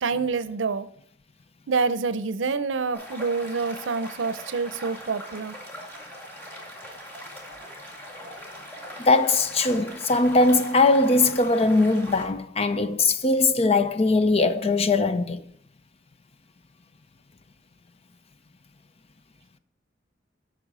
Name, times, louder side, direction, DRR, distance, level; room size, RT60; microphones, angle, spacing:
voice 1, 0.0-0.9 1.7-5.6, right 4 dB, 90° right, 0.6 m, -27 dB
sound 1, 2.9-12.2, equal, 10° left, 2.0 m, -41 dB
voice 2, 9.1-15.4, left 3 dB, 35° left, 0.5 m, -20 dB
8.9 x 6.1 x 4.8 m
head